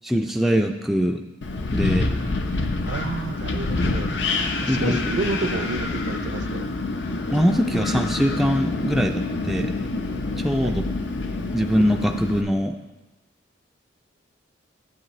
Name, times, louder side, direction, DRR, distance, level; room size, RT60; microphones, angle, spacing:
voice 1, 0.0-1.2 1.7-2.1 4.7-5.0 7.3-9.7 10.4-10.8 11.5-12.7, equal, ahead, 3 dB, 0.3 m, -22 dB
Wind, 1.4-12.4, left 3 dB, 70° left, 0.7 m, -27 dB
voice 2, 2.9-4.1 4.6-6.6 10.6-10.8, right 3 dB, 70° right, 9 dB, 0.5 m, -29 dB
9.1 x 7.9 x 3.2 m, 1.1 s
head